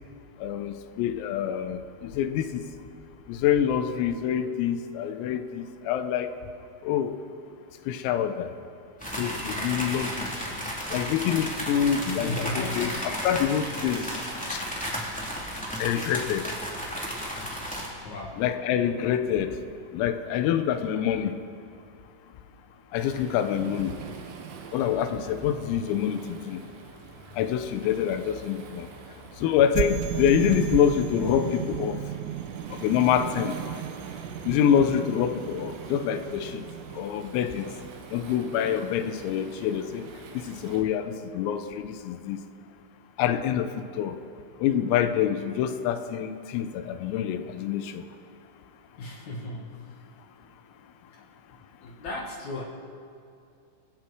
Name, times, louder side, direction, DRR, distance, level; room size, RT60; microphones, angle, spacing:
voice 1, 0.4-2.6 3.3-6.3 6.8-7.1 7.9-8.5 9.2-10.3 10.9-12.9 13.2-14.1 14.5-14.6 15.8-16.5 18.3-19.5 19.9-21.4 22.9-23.9 24.7-26.6 27.4-28.9 29.4-32.0 32.7-33.6 34.5-36.6 37.0-37.7 38.1-40.0 40.4-42.4 43.2-44.2 44.6-48.0, left 9 dB, 90° left, 8 dB, 3.8 m, -26 dB
sound 1, 9.0-17.9, equal, ahead, 2.7 m, -33 dB
voice 2, 11.9-13.1 18.0-18.4 34.2-34.4 49.0-49.8 51.8-52.6, left 2 dB, 60° left, 0 dB, 2.0 m, -35 dB
Waves surf, 23.0-40.8, right 5 dB, 65° right, 2.9 m, -46 dB
sound 2, 23.6-26.6 29.7-37.0, right 12 dB, 85° right, 3.2 m, -35 dB
29.0 x 21.5 x 4.7 m, 2.6 s
omnidirectional pair, 5.9 m